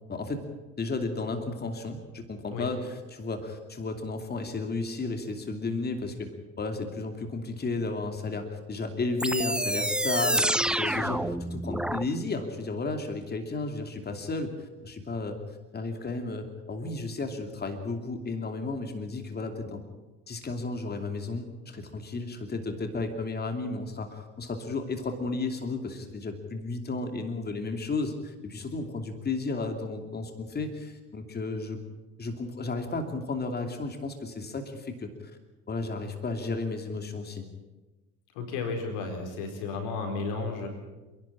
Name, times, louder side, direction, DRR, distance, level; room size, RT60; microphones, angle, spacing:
voice 1, 0.1-0.4 0.8-6.3 6.6-15.4 15.7-19.8 20.3-31.8 32.2-35.1 35.7-37.5, left 3 dB, 30° left, 6 dB, 2.8 m, -33 dB
sound 1, 9.2-12.1, right 1 dB, 5° right, 0.7 m, -27 dB
voice 2, 10.8-11.1 38.3-40.7, left 4 dB, 90° left, 4 dB, 4.5 m, -33 dB
27.5 x 12.0 x 8.7 m, 1.2 s
supercardioid pair, 85°, 30 cm